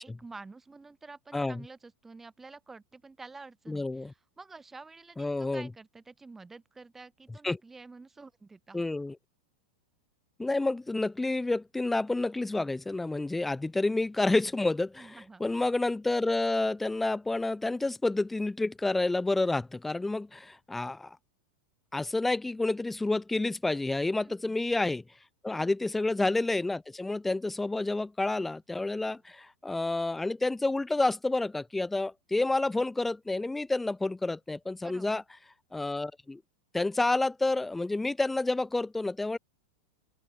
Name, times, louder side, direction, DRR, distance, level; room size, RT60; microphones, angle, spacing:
voice 1, 0.0-8.8 14.9-15.4 24.2-24.6 25.6-25.9 29.0-29.2 34.8-35.2, right 3 dB, 10° right, 2.6 m, -49 dB
voice 2, 1.3-1.6 3.7-4.1 5.2-5.7 7.4-7.6 8.7-9.2 10.4-21.2 21.9-25.0 25.4-35.2 35.7-36.4 36.7-39.4, left 2 dB, 5° left, 0.4 m, -29 dB
open air
supercardioid pair, 145°, 3 cm